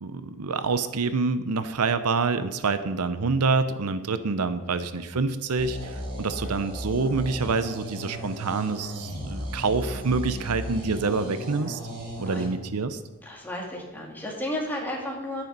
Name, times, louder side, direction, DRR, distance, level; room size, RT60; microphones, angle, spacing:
voice 1, 0.0-11.8 12.2-13.0, right 4 dB, 85° right, 12 dB, 0.7 m, -27 dB
sound 1, 5.6-12.4, equal, 60° right, 4.7 m, -35 dB
voice 2, 13.2-15.4, left 1 dB, 10° left, -2 dB, 2.5 m, -33 dB
10.5 x 9.5 x 5.3 m, 1.1 s
head